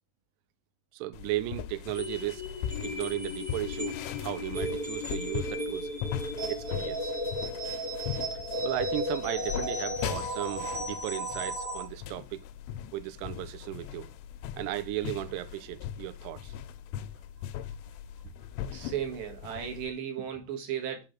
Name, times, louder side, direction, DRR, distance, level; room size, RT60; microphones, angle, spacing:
voice 1, 0.9-2.4 2.8-5.9 6.5-7.1 8.3-12.4 12.9-14.1 14.6-16.5, right 15 dB, 85° right, 2.4 m, -35 dB
sound 1, 1.1-19.9, left 10 dB, 85° left, 3.0 m, -40 dB
sound 2, 1.9-11.9, equal, 35° right, 1.5 m, -35 dB
voice 2, 18.7-21.0, right 9 dB, 65° right, 3.5 m, -35 dB
9.5 x 3.4 x 5.8 m
omnidirectional pair, 5.6 m